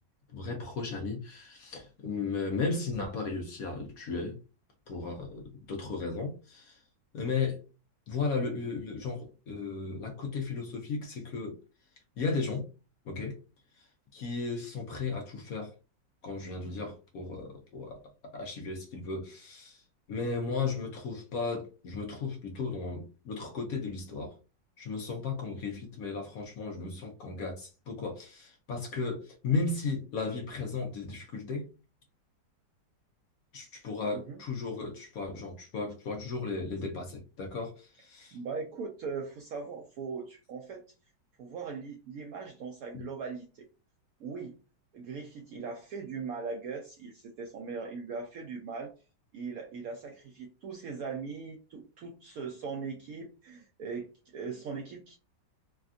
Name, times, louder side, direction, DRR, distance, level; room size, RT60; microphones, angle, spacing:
voice 1, 0.3-4.4 4.9-6.8 7.1-7.6 8.1-11.6 12.2-12.7 13.1-13.4 13.8-13.9 14.1-15.7 16.2-18.0 18.3-19.8 20.1-24.3 24.8-31.7 33.5-38.4 42.9-43.0, left 4 dB, 65° left, 0.9 m, -35 dB
voice 2, 38.3-40.8 41.4-43.7 44.2-44.5 44.9-48.9 49.3-54.1 54.3-55.2, right 5 dB, 75° right, 0.8 m, -39 dB
3.3 x 2.2 x 2.4 m
omnidirectional pair, 2.0 m